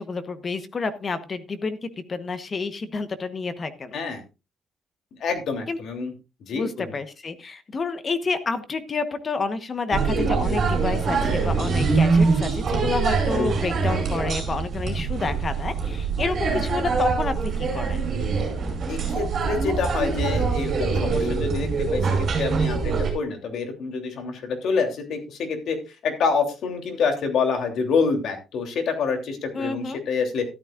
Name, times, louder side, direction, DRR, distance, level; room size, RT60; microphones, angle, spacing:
voice 1, 0.0-4.0 5.7-5.8 6.5-18.1 29.5-30.0, left 4 dB, 25° left, 11 dB, 1.1 m, -29 dB
voice 2, 5.2-6.1 6.4-6.9 18.9-25.8 26.0-30.4, left 5 dB, 55° left, 4 dB, 3.1 m, -27 dB
sound 1, 9.9-23.1, right 4 dB, 40° right, 5.5 m, -24 dB
13.5 x 12.5 x 2.5 m, 0.29 s
cardioid pair, 175°, 0 cm